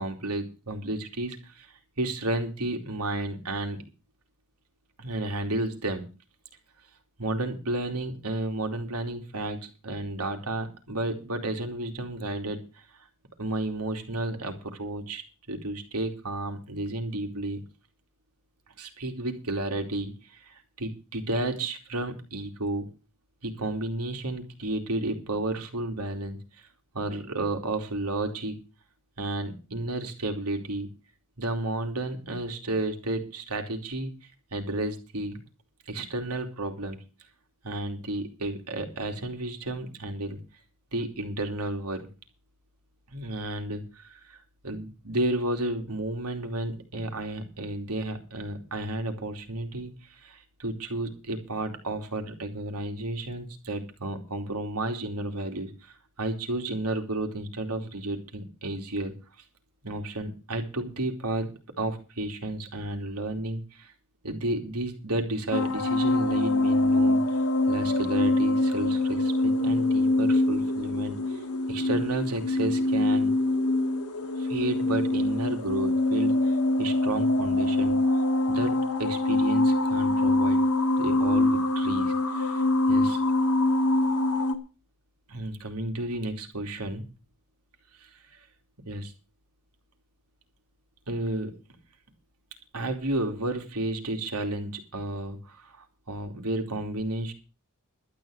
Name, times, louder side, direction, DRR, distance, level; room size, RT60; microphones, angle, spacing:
voice 1, 0.0-3.8 5.0-6.0 7.2-12.8 13.4-15.2 15.5-17.6 18.8-22.9 23.4-26.7 26.9-28.5 29.2-30.9 31.4-34.1 34.5-35.4 35.9-37.0 37.6-40.4 40.9-42.1 43.1-44.4 44.6-59.1 59.8-63.9 64.2-67.2 67.7-71.4 71.7-73.3 74.4-78.0 78.5-80.6 81.0-82.6 82.9-83.2 85.3-87.0 88.0-88.1 88.9-89.1 91.1-91.5 92.7-97.3, right 1 dB, 85° right, 5 dB, 2.9 m, -32 dB
sound 1, 65.5-84.6, left 2 dB, 75° left, 1.7 m, -24 dB
12.0 x 9.7 x 6.5 m, 0.33 s
head